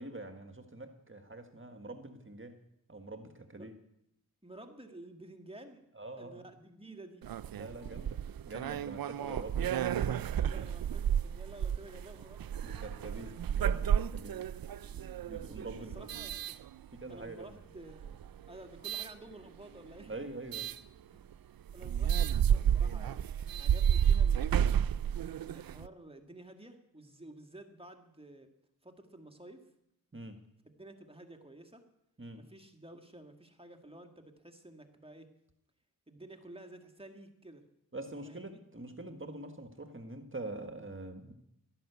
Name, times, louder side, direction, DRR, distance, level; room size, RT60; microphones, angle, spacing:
voice 1, 0.0-2.6 2.9-3.7 5.9-6.4 7.5-8.2 8.4-9.5 9.9-10.2 12.6-14.4 15.3-16.1 16.9-17.5 20.1-20.7 30.1-30.4 32.2-32.4 37.9-41.3, right 2 dB, 35° right, 7 dB, 1.6 m, -44 dB
voice 2, 4.4-5.9 6.2-7.2 9.2-9.5 10.4-12.4 14.8-15.1 15.8-16.4 17.1-18.2 18.5-20.1 21.1-21.4 21.7-23.2 23.6-24.7 25.4-28.5 28.8-29.7 30.6-31.9 32.3-35.3 36.1-37.6 38.3-38.6, right 1 dB, 15° right, 5 dB, 2.0 m, -52 dB
sound 1, 7.2-17.2 17.9-19.1 20.5-20.8 21.3-21.4 21.7-25.9, right 9 dB, 75° right, 0.5 m, -31 dB
12.5 x 11.0 x 8.2 m, 0.79 s
cardioid pair, 50°, 36 cm